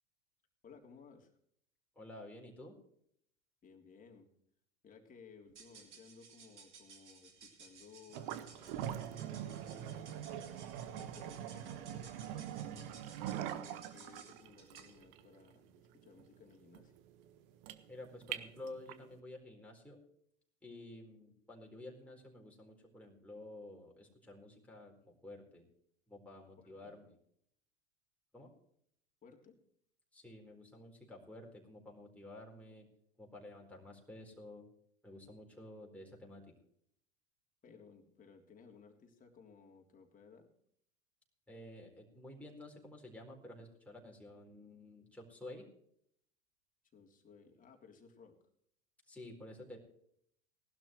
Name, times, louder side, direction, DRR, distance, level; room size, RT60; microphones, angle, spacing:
voice 1, 0.6-1.3 3.6-4.3 4.8-10.5 10.9-13.0 13.5-16.9 26.8-26.9 29.2-29.5 37.6-40.5 46.9-48.3, left 5 dB, 25° left, 1 dB, 3.4 m, -59 dB
voice 2, 2.0-2.7 17.9-20.0 20.6-25.6 26.1-27.2 28.3-28.5 30.1-32.9 33.2-34.6 35.0-36.5 41.5-45.6 49.1-49.8, left 1 dB, 5° left, -1 dB, 4.4 m, -51 dB
sound 1, 5.5-15.0, right 5 dB, 80° right, 3.1 m, -58 dB
sound 2, 8.1-19.1, right 11 dB, 55° right, 1.4 m, -43 dB
19.5 x 12.0 x 3.2 m, 0.68 s
hypercardioid pair, 85°, 34 cm